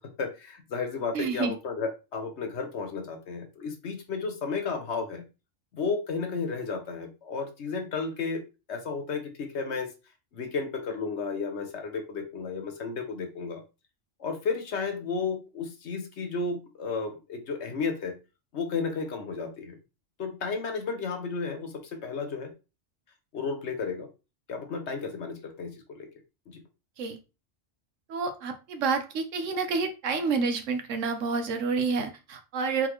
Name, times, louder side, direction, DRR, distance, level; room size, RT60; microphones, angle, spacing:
voice 1, 0.0-5.2 5.7-8.4 8.7-9.9 10.3-13.6 14.2-18.2 18.5-19.8 20.2-22.5 23.3-24.1 24.5-26.1 26.5-26.6, left 4 dB, 65° left, 5 dB, 1.2 m, -33 dB
voice 2, 1.1-1.5 27.0-27.2 28.1-32.9, right 4 dB, 80° right, 7 dB, 1.2 m, -29 dB
4.1 x 3.8 x 3.0 m, 0.29 s
omnidirectional pair, 1.3 m